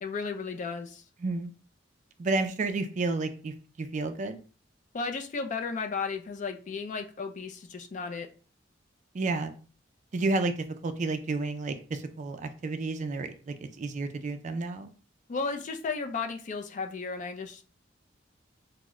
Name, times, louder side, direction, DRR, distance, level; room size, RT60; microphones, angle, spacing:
voice 1, 0.0-1.0 4.9-8.3 15.3-17.6, left 4 dB, 40° left, 5 dB, 0.4 m, -34 dB
voice 2, 1.2-1.5 2.2-4.4 9.1-9.6 10.1-14.9, right 3 dB, 40° right, 8 dB, 0.3 m, -31 dB
3.0 x 2.1 x 3.5 m, 0.39 s
head